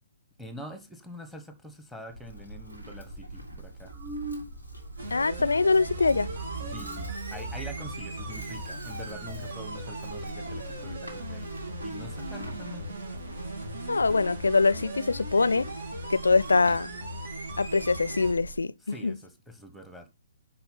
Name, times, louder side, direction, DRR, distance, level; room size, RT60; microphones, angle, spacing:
voice 1, 0.4-3.9 6.6-11.5 11.8-13.0 18.8-20.1, equal, ahead, 1.2 m, -45 dB
Livestock farm animals working animals, 2.1-18.6, right 1 dB, 80° right, 3.7 m, -44 dB
sound 1, 3.9-4.9 5.1-5.4 5.7-8.9, right 6 dB, 20° right, 2.1 m, -40 dB
sound 2, 5.0-18.3, right 1 dB, 60° right, 3.0 m, -38 dB
voice 2, 5.1-6.3 13.9-15.7 16.1-16.9 17.6-19.2, left 4 dB, 70° left, 0.5 m, -23 dB
10.5 x 4.4 x 5.6 m
figure-of-eight pair, 130°, 0 cm